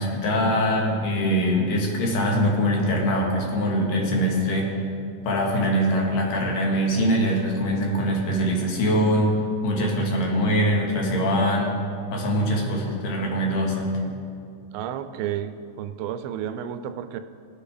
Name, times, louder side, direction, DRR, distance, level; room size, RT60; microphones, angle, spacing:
voice 1, 0.0-4.7 5.3-9.3 9.6-11.7 12.1-14.0, equal, 70° left, -1 dB, 3.1 m, -23 dB
voice 2, 14.7-17.2, right 10 dB, 90° right, 10 dB, 2.5 m, -31 dB
19.0 x 8.4 x 3.5 m, 2.4 s
omnidirectional pair, 4.2 m